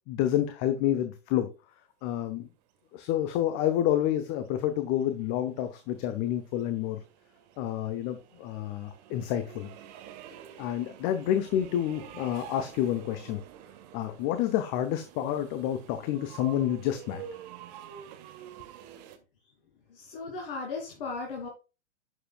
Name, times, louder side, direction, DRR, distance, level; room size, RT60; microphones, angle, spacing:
voice 1, 0.1-1.5 2.0-2.5 2.9-7.0 7.6-9.7 10.6-13.4 13.9-17.2, left 11 dB, 30° left, 10 dB, 0.9 m, -29 dB
sound 1, 3.3-19.2, right 10 dB, 35° right, 1.6 m, -49 dB
voice 2, 19.9-21.5, left 4 dB, 50° left, -1 dB, 2.9 m, -36 dB
11.0 x 6.9 x 2.3 m, 0.31 s
figure-of-eight pair, 115°, 35 cm